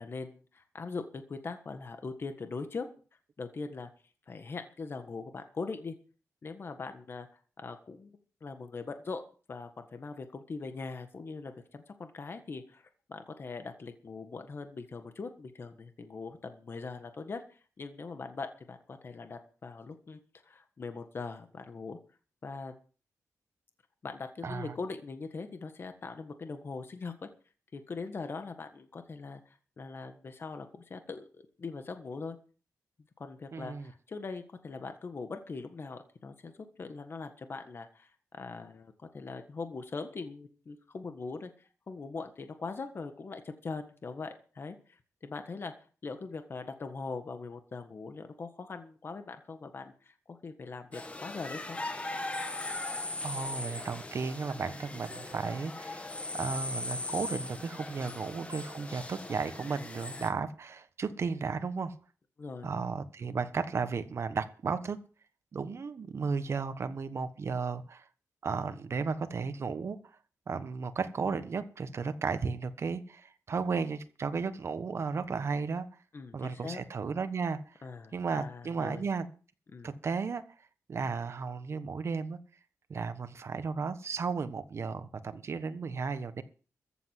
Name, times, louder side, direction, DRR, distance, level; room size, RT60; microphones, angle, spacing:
voice 1, 0.0-2.9 3.4-3.9 4.3-5.9 6.4-7.3 7.6-8.1 8.4-9.2 9.5-22.0 22.4-22.7 24.0-27.3 27.7-32.4 33.2-41.5 41.9-44.8 45.2-45.7 46.0-51.8 62.4-62.7 76.1-76.8 77.8-79.1 79.7-79.9, left 4 dB, 40° left, 8 dB, 1.6 m, -41 dB
voice 2, 24.4-24.7 33.5-33.9 53.2-56.1 56.3-61.9 62.6-65.0 65.5-68.0 68.4-70.0 70.5-75.9 76.3-77.8 78.1-79.3 79.8-80.4 80.9-82.4 82.9-86.4, right 5 dB, 50° right, 12 dB, 1.2 m, -34 dB
sound 1, 50.9-60.3, left 2 dB, 20° left, 1.8 m, -39 dB
14.5 x 7.9 x 7.7 m, 0.38 s
wide cardioid pair, 150°, 6 cm